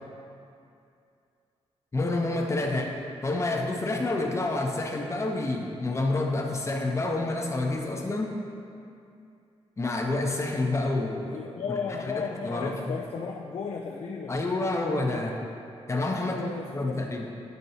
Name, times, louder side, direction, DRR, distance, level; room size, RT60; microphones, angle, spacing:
voice 1, 1.9-2.9 3.2-8.4 9.8-11.3 12.2-13.0 14.3-15.4 15.9-16.4 16.7-17.3, left 2 dB, 25° left, 1 dB, 0.7 m, -28 dB
voice 2, 2.7-3.0 11.2-14.4 16.2-17.1, left 5 dB, 70° left, -1 dB, 0.4 m, -35 dB
9.1 x 4.5 x 2.8 m, 2.5 s
cardioid pair, 100°, 11 cm